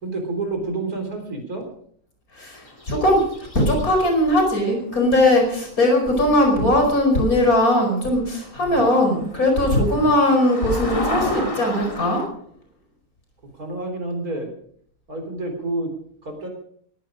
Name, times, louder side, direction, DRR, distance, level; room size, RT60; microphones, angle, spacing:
voice 1, 0.0-1.7 8.6-8.9 10.0-10.2 13.5-14.5 15.1-15.9 16.2-16.5, right 2 dB, 90° right, 5 dB, 4.3 m, -29 dB
voice 2, 2.3-12.2, left 1 dB, 75° left, 2 dB, 5.4 m, -19 dB
sound 1, 2.6-4.1 7.6-7.7 8.2-8.3 8.5-12.3, left 1 dB, 20° left, 2.4 m, -30 dB
18.0 x 14.5 x 5.0 m, 0.65 s
omnidirectional pair, 1.5 m